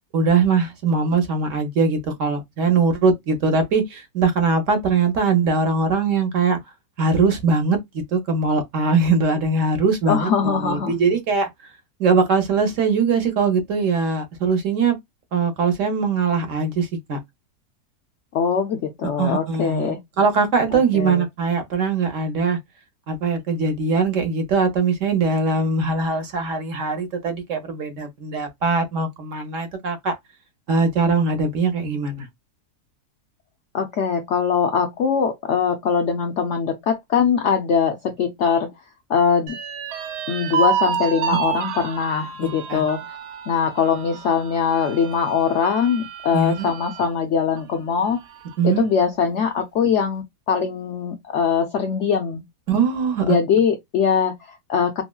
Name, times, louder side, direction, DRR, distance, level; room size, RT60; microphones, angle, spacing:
voice 1, 0.1-6.6 7.0-7.8 8.1-11.5 12.0-15.0 15.3-17.2 19.2-22.6 23.1-30.1 30.7-32.3 42.7-42.8 46.3-46.7 48.6-48.8 52.7-53.4, right 4 dB, 60° right, 0.9 m, -21 dB
voice 2, 10.1-10.9 18.3-20.0 20.7-21.2 33.7-38.7 39.1-39.6 40.3-43.2 43.5-48.2 48.6-52.4 53.2-55.0, left 6 dB, 75° left, 0.6 m, -22 dB
sound 1, 39.5-47.1 47.6-47.7 48.1-48.7, right 7 dB, 85° right, 1.2 m, -29 dB
3.0 x 2.7 x 2.2 m
omnidirectional pair, 1.7 m